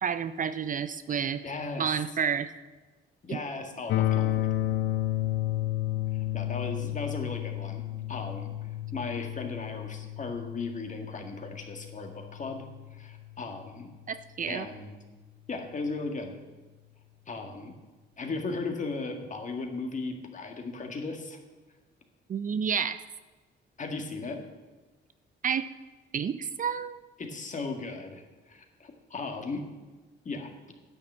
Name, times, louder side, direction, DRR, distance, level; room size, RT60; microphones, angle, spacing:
voice 1, 0.0-1.4 1.8-2.5 3.3-3.4 14.1-14.7 22.3-23.0 25.4-25.7 26.1-27.0, right 7 dB, 40° right, 12 dB, 0.5 m, -30 dB
voice 2, 1.4-1.9 3.2-4.5 6.1-13.9 14.5-15.0 15.5-16.4 17.3-17.8 18.2-21.4 23.8-24.4 27.2-29.7 30.3-30.5, left 3 dB, 40° left, 4 dB, 1.9 m, -37 dB
sound 1, 3.9-13.8, left 14 dB, 70° left, 0.5 m, -32 dB
9.9 x 6.9 x 7.4 m, 1.3 s
cardioid pair, 90°, 20 cm